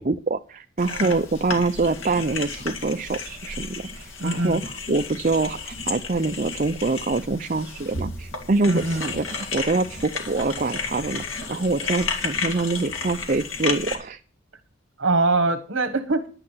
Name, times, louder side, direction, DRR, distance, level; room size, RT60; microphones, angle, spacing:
voice 1, 0.0-4.6 4.9-14.2, right 3 dB, 40° right, 8 dB, 0.5 m, -25 dB
sound 1, 0.8-13.9, left 4 dB, 85° left, 2.1 m, -32 dB
voice 2, 4.2-4.5 8.6-9.1 15.0-16.2, right 2 dB, 65° right, 7 dB, 1.3 m, -23 dB
11.0 x 9.9 x 5.7 m, 0.40 s
head